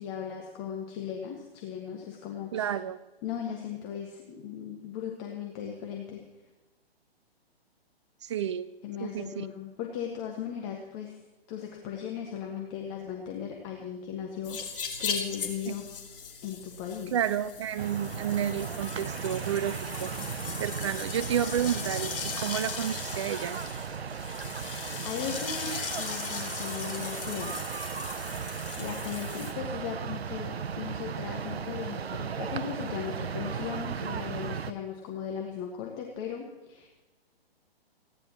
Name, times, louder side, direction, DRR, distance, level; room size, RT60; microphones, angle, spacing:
voice 1, 0.0-2.7 3.2-6.2 8.2-8.4 8.8-11.2 11.5-15.9 16.4-17.1 25.0-27.6 28.8-36.9, left 8 dB, 30° left, 1 dB, 1.7 m, -37 dB
voice 2, 2.5-3.0 8.2-8.7 9.0-9.5 15.7-15.8 17.1-20.1 20.6-23.6, right 9 dB, 30° right, 15 dB, 0.5 m, -31 dB
sound 1, 14.4-29.5, left 6 dB, 60° left, 2.9 m, -38 dB
sound 2, 17.8-34.7, right 7 dB, 75° right, 0.7 m, -36 dB
30.0 x 11.0 x 3.0 m, 1.2 s
figure-of-eight pair, 130°, 31 cm